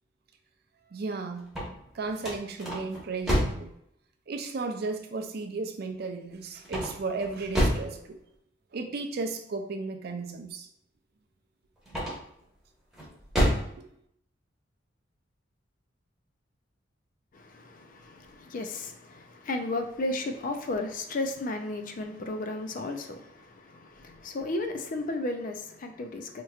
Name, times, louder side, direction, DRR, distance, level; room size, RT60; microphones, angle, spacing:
voice 1, 0.9-1.5 1.9-3.7 4.3-8.2 8.7-10.7 13.5-13.8, right 3 dB, 55° right, 0.5 m, -34 dB
sound 1, 1.4-3.7 6.6-7.9 11.8-12.4 12.9-13.7, equal, ahead, 1.1 m, -28 dB
voice 2, 17.3-26.4, left 2 dB, 45° left, 0.4 m, -34 dB
4.4 x 2.9 x 2.4 m
head